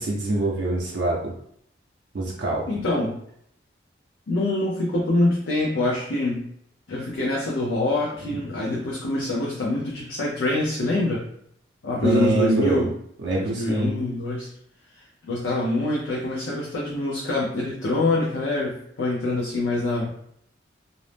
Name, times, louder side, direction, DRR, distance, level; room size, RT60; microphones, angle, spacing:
voice 1, 0.0-1.3 2.1-2.7 8.2-8.4 12.0-12.9 13.2-13.9, right 2 dB, 65° right, -3 dB, 0.5 m, -24 dB
voice 2, 2.7-3.2 4.3-6.5 6.9-11.2 11.8-12.9 13.4-14.5 14.9-20.1, left 2 dB, 80° left, -4 dB, 0.6 m, -25 dB
2.6 x 2.0 x 3.2 m, 0.70 s
head